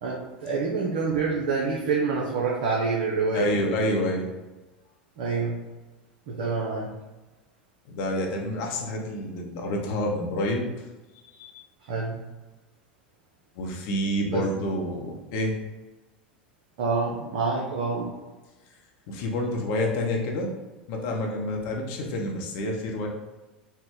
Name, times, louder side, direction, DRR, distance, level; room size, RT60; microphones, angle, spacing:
voice 1, 0.0-3.5 5.2-5.6 6.4-6.9 11.9-12.2 14.3-14.4 16.8-18.1, right 4 dB, 60° right, -3 dB, 0.7 m, -27 dB
voice 2, 3.3-4.3 7.9-10.6 11.3-11.7 13.6-15.6 19.1-20.5 20.9-23.1, left 1 dB, 55° left, 0 dB, 0.9 m, -28 dB
4.3 x 2.2 x 3.7 m, 1.1 s
figure-of-eight pair, 80°, 5 cm